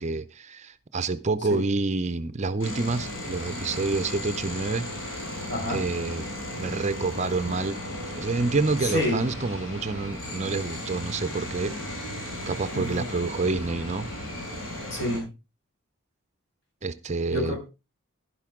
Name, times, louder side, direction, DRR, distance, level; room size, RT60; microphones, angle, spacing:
voice 1, 0.0-5.2 5.7-6.2 6.6-7.8 8.2-11.7 12.5-14.1 16.8-17.6, right 3 dB, 35° right, 0.6 m, -28 dB
sound 1, 2.6-15.2, left 1 dB, 80° left, 6.5 m, -35 dB
voice 2, 5.5-5.8 8.8-9.3 12.7-13.0 14.9-15.3 17.3-17.7, left 1 dB, 55° left, 5.7 m, -28 dB
11.5 x 10.5 x 3.7 m
head